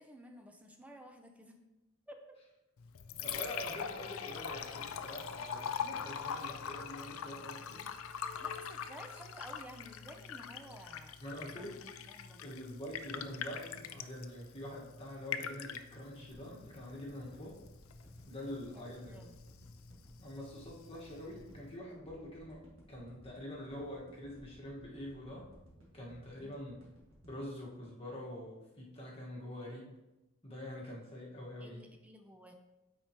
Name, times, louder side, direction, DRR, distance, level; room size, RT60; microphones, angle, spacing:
voice 1, 0.0-1.6 2.1-2.2 8.4-11.2 11.6-11.7 12.1-12.4 18.7-19.4 26.3-26.5 31.6-32.5, equal, 5° right, 4 dB, 0.5 m, -53 dB
Liquid, 2.8-21.8, left 7 dB, 75° left, 0.4 m, -44 dB
voice 2, 3.2-7.9 11.2-11.8 12.4-17.6 18.3-19.3 20.2-22.6 22.9-25.5 25.9-26.8 27.3-29.9 30.4-31.9, left 1 dB, 25° left, -4 dB, 1.5 m, -45 dB
sound 1, 16.3-28.6 29.0-29.1, equal, 65° right, 1.8 m, -59 dB
8.8 x 4.5 x 2.9 m, 0.99 s
head